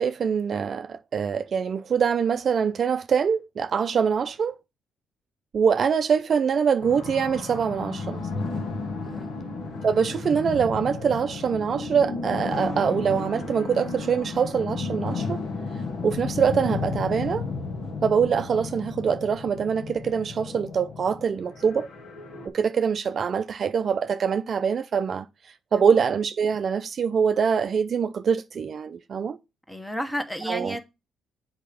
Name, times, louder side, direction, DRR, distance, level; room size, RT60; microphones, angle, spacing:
voice 1, 0.0-4.5 5.5-8.3 9.8-15.4 16.0-17.4 18.0-21.9 22.5-25.3 25.7-29.4 30.5-30.8, right 6 dB, 50° right, 0.5 m, -24 dB
sound 1, 6.8-22.5, left 4 dB, 70° left, 2.0 m, -33 dB
voice 2, 9.0-9.3 25.7-25.9 29.7-30.8, equal, 5° left, 1.2 m, -32 dB
7.8 x 4.2 x 5.1 m
cardioid pair, 90°, 0 cm